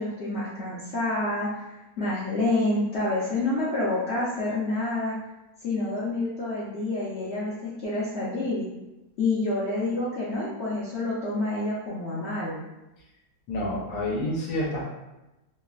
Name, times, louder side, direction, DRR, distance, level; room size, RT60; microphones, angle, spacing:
voice 1, 0.0-1.7 2.0-5.2 5.6-8.7 9.2-12.6, left 2 dB, 70° left, -9 dB, 0.6 m, -28 dB
voice 2, 13.5-14.8, left 1 dB, 85° left, -3 dB, 1.3 m, -28 dB
3.1 x 2.1 x 2.3 m, 0.98 s
omnidirectional pair, 1.8 m